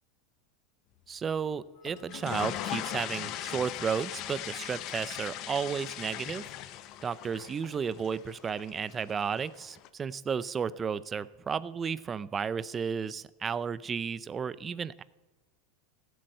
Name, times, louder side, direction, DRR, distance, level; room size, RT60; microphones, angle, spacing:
voice 1, 1.1-6.4 7.0-15.0, right 6 dB, 25° right, 18 dB, 0.4 m, -33 dB
Wind instrument woodwind instrument, 1.7-5.9, left 5 dB, 75° left, 1.2 m, -57 dB
sound 1, 1.9-9.9, left 13 dB, 50° left, 0.7 m, -39 dB
14.5 x 7.8 x 6.6 m, 1.1 s
supercardioid pair, 120°, 0 cm